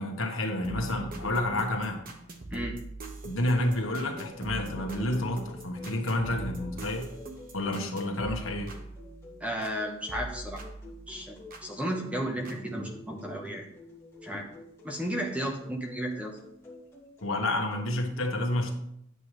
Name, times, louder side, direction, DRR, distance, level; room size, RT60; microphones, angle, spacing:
voice 1, 0.0-2.0 3.2-7.1 7.5-8.7 17.2-18.7, left 1 dB, 65° left, 3 dB, 1.4 m, -29 dB
sound 1, 0.6-9.8 10.1-11.7 12.5-12.6, right 2 dB, 45° right, 1.1 m, -42 dB
sound 2, 3.4-17.9, left 2 dB, 15° left, 1.8 m, -50 dB
voice 2, 9.4-10.6 11.1-13.6 14.2-14.5 14.8-16.4, right 1 dB, 5° right, 1 dB, 1.1 m, -33 dB
9.6 x 7.4 x 3.3 m, 0.75 s
head